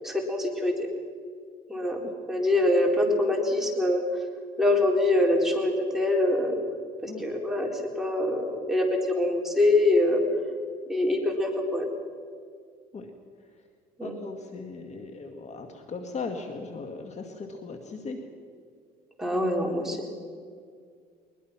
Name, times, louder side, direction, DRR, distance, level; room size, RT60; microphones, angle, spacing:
voice 1, 0.0-0.9 1.7-2.0 2.3-4.0 4.6-6.6 7.0-10.2 10.9-11.9 14.0-14.1 19.2-20.0, left 1 dB, ahead, -1 dB, 4.0 m, -24 dB
voice 2, 14.0-18.2, left 4 dB, 40° left, 5 dB, 1.9 m, -38 dB
22.0 x 21.5 x 6.0 m, 2.1 s
cardioid pair, 110°, 17 cm